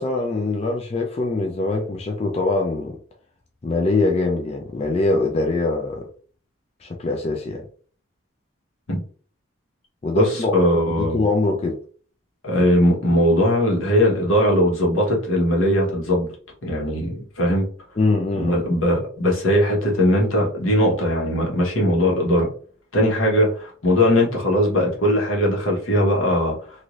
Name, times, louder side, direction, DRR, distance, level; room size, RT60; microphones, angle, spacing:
voice 1, 0.0-3.0 3.6-6.1 6.8-7.6 10.0-10.5 10.9-11.8 18.0-18.6, left 3 dB, 30° left, 2 dB, 0.4 m, -23 dB
voice 2, 10.1-11.2 12.4-16.3 16.6-17.7 18.3-22.5 22.9-26.6, equal, 85° left, -2 dB, 1.2 m, -19 dB
2.6 x 2.6 x 3.0 m, 0.43 s
head